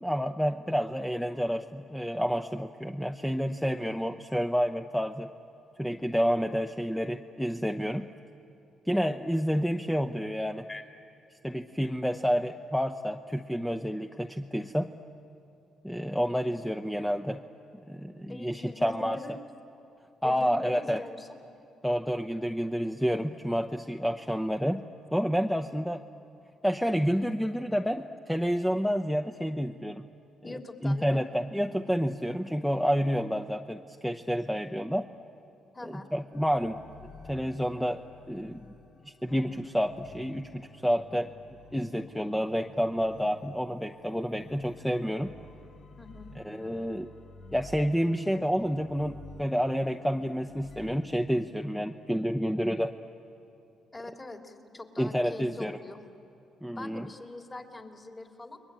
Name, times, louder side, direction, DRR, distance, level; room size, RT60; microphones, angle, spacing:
voice 1, 0.0-5.3 5.8-8.1 8.9-10.7 11.4-14.9 15.8-17.4 17.9-19.2 20.2-21.0 21.8-24.8 25.1-26.0 26.6-30.0 30.5-35.1 35.8-36.8 37.2-38.0 38.3-38.6 39.2-40.5 40.8-41.3 41.7-45.3 46.4-47.1 47.5-52.9 55.0-55.8 56.6-57.1, equal, ahead, 6 dB, 0.8 m, -29 dB
voice 2, 18.3-19.4 20.2-21.3 30.4-31.2 35.7-36.1 46.0-46.3 53.9-56.0 56.8-58.6, left 2 dB, 25° left, 3 dB, 3.2 m, -43 dB
sound 1, 36.3-51.1, left 3 dB, 55° left, 1.3 m, -52 dB
29.5 x 22.0 x 8.9 m, 2.8 s
cardioid pair, 90°, 0 cm